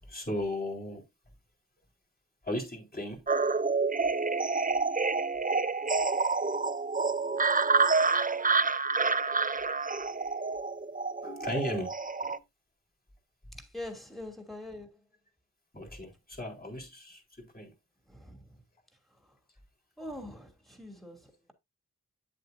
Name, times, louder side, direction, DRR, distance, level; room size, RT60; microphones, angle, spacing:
voice 1, 0.0-1.0 2.4-3.3 11.2-12.4 15.7-17.7, left 1 dB, 25° left, 3.8 m, -36 dB
sound 1, 3.3-12.4, right 4 dB, 25° right, 0.5 m, -28 dB
voice 2, 13.6-15.0 18.1-18.6 19.2-19.3 20.0-21.5, left 1 dB, ahead, 2.7 m, -44 dB
9.1 x 7.8 x 2.6 m
wide cardioid pair, 45°, 38 cm